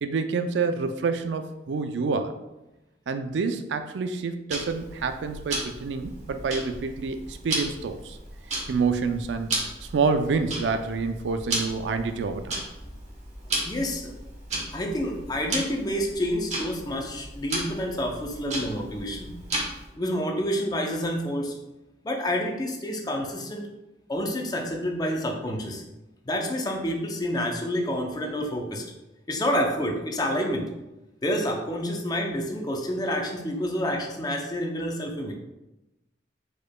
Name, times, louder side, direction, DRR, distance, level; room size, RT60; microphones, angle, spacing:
voice 1, 0.0-2.3 3.1-8.2 8.7-9.5 9.9-12.6, right 4 dB, 75° right, 9 dB, 0.4 m, -27 dB
Tick-tock, 4.5-19.9, right 1 dB, 40° right, 1.1 m, -35 dB
voice 2, 13.7-14.1 14.7-19.3 20.0-21.5 22.0-23.7 24.1-25.8 26.3-28.8 29.3-30.7 31.2-35.3, equal, 20° left, 2 dB, 0.5 m, -28 dB
4.9 x 4.3 x 2.2 m, 0.98 s
head